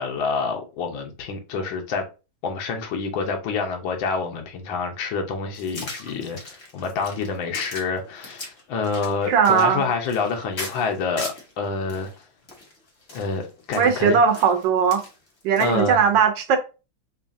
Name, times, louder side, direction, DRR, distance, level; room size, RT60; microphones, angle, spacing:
voice 1, 0.0-2.0 2.4-12.1 13.1-14.2 15.6-16.0, left 4 dB, 75° left, 1.6 m, -27 dB
sound 1, 5.5-11.5 11.9-15.9, left 2 dB, 45° left, 0.9 m, -39 dB
voice 2, 9.3-9.8 13.8-15.0 15.4-16.6, right 7 dB, 70° right, 1.3 m, -19 dB
5.4 x 2.3 x 2.6 m
omnidirectional pair, 2.2 m